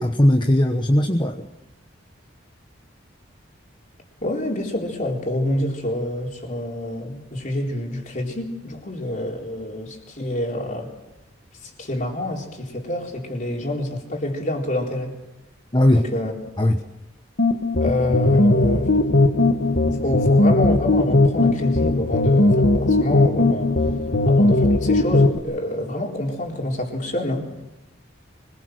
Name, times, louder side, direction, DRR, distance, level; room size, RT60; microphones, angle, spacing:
voice 1, 0.0-1.5 15.7-16.1 16.6-16.8, left 1 dB, 25° left, 4 dB, 1.1 m, -18 dB
voice 2, 4.2-10.9 11.6-15.1 15.9-16.3 17.8-18.9 20.0-23.7 24.3-27.5, left 1 dB, 40° left, 0 dB, 4.1 m, -27 dB
sound 1, 17.4-25.4, left 2 dB, 70° left, 1.5 m, -18 dB
25.0 x 21.0 x 6.5 m, 0.98 s
head